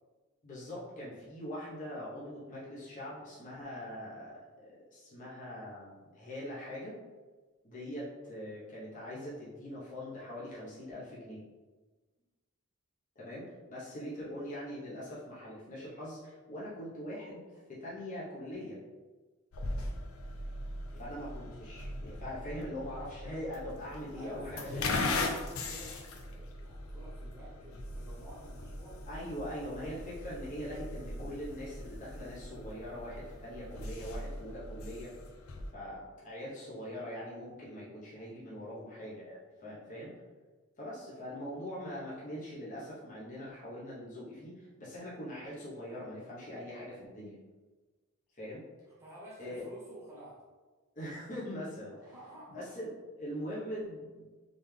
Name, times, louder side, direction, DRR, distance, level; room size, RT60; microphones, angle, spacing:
voice 1, 0.4-7.0 7.6-11.4 13.1-18.8 20.9-24.9 29.0-35.1 35.7-40.1 40.8-47.4 48.3-48.6 49.4-49.6 50.9-52.1 52.5-52.9 53.2-54.3, equal, 40° left, -8 dB, 1.2 m, -42 dB
sound 1, 19.5-35.7, left 2 dB, 85° left, 0.6 m, -40 dB
voice 2, 24.2-29.0 49.0-50.4 52.0-52.6, right 1 dB, 10° right, -7 dB, 1.1 m, -51 dB
4.0 x 3.5 x 3.4 m, 1.3 s
head